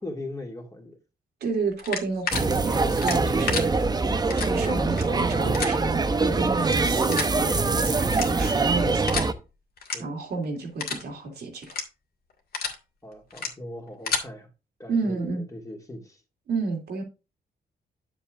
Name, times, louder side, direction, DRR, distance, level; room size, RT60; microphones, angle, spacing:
voice 1, 0.0-1.0 3.1-3.6 7.8-8.3 9.9-10.1 13.0-14.5 14.8-16.2, left 1 dB, 20° left, 2.2 m, -40 dB
voice 2, 1.4-3.7 4.5-9.2 10.0-11.7 14.9-15.4 16.5-17.0, right 4 dB, 80° right, 2.9 m, -30 dB
sound 1, 1.8-2.4 3.0-3.6 4.3-4.5 4.9-5.0 5.5-5.7 6.6-6.7 7.1-7.3 8.1-8.5 9.1-9.3 9.8-9.9 10.3-10.4 10.8-11.0 11.6-11.8 12.3-12.7 13.3-13.5 13.9-14.2, left 5 dB, 70° left, 1.9 m, -29 dB
sound 2, 2.3-9.3, right 3 dB, 25° right, 0.7 m, -24 dB
9.9 x 7.1 x 2.5 m
cardioid pair, 110°, 16 cm